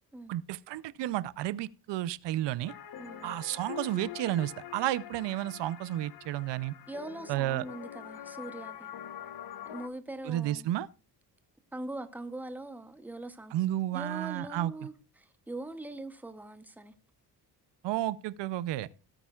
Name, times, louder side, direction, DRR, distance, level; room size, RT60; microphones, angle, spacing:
voice 1, 0.3-2.7 3.2-6.7 7.3-7.6 10.2-10.9 13.5-14.7 17.8-18.9, right 14 dB, 85° right, 0.6 m, -32 dB
sound 1, 2.7-9.9, left 10 dB, 60° left, 1.0 m, -45 dB
voice 2, 3.0-3.4 6.9-8.9 9.6-10.7 11.7-13.5 13.9-16.9, right 2 dB, 5° right, 0.7 m, -42 dB
17.5 x 8.8 x 2.3 m
cardioid pair, 145°, 41 cm